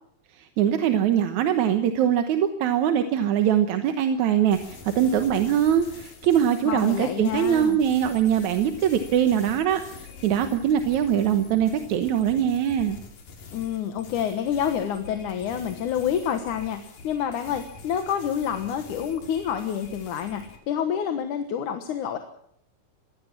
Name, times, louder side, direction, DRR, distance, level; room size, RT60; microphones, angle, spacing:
voice 1, 0.4-13.0, right 9 dB, 70° right, 8 dB, 2.4 m, -22 dB
sound 1, 4.5-20.6, left 5 dB, 85° left, 4.5 m, -45 dB
voice 2, 6.6-7.8 13.5-22.2, left 8 dB, 70° left, 7 dB, 2.8 m, -28 dB
23.0 x 16.0 x 7.4 m, 0.69 s
omnidirectional pair, 3.8 m